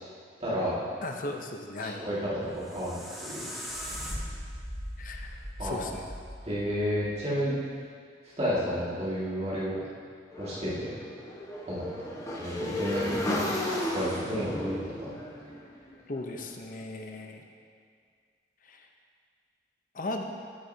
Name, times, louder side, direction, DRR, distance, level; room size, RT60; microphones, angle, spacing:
voice 1, 0.4-0.8 1.8-3.0 3.3-3.5 5.6-6.0 6.4-7.5 8.4-9.8 10.4-10.9 11.6-11.8 12.3-13.4 13.9-15.1, equal, 35° right, -9 dB, 2.0 m, -31 dB
voice 2, 1.0-2.0 5.0-6.1 16.1-17.4 18.6-18.9 19.9-20.2, left 2 dB, 45° left, 3 dB, 0.7 m, -37 dB
sound 1, 2.4-7.5, equal, ahead, 0.9 m, -39 dB
Motorcycle / Engine, 10.3-16.4, left 1 dB, 20° left, 1.1 m, -34 dB
14.0 x 6.5 x 2.8 m, 2.1 s
head